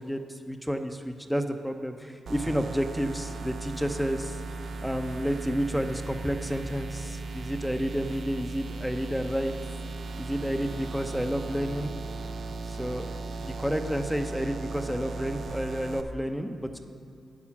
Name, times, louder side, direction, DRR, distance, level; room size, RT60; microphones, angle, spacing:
voice 1, 0.0-4.4 4.8-9.5 10.2-11.9 12.6-13.1 13.4-16.8, equal, ahead, 6 dB, 0.7 m, -30 dB
sound 1, 2.3-16.0, right 3 dB, 65° right, 0.6 m, -37 dB
9.4 x 7.2 x 7.1 m, 2.5 s
cardioid pair, 100°, 0 cm